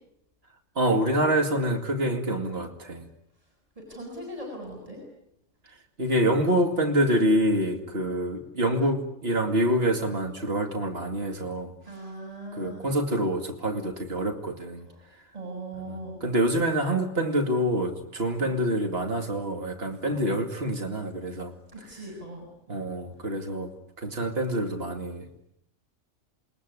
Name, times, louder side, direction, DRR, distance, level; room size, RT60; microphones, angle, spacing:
voice 1, 0.8-3.1 6.0-11.7 12.5-14.9 15.8-21.5 22.7-23.7 24.0-25.3, right 1 dB, 50° right, 2.7 m, -26 dB
voice 2, 3.8-5.0 11.9-12.9 14.8-15.0 15.3-16.2 18.4-18.6 20.1-20.3 21.7-22.5, right 1 dB, 30° right, 7.1 m, -39 dB
28.0 x 22.0 x 9.7 m
omnidirectional pair, 1.3 m